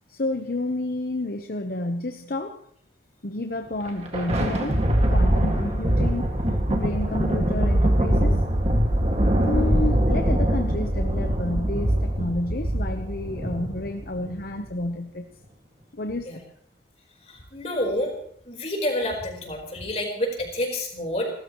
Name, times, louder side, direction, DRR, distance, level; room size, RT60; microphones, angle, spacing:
voice 1, 0.1-2.6 3.2-6.3 6.7-8.4 9.4-15.3 15.9-16.5, left 2 dB, 55° left, 6 dB, 1.0 m, -30 dB
Thunder, 3.7-14.5, right 1 dB, 35° right, 2.1 m, -23 dB
voice 2, 17.3-18.1 18.5-21.3, left 1 dB, 35° left, 0 dB, 4.4 m, -28 dB
30.0 x 13.5 x 3.1 m, 0.62 s
head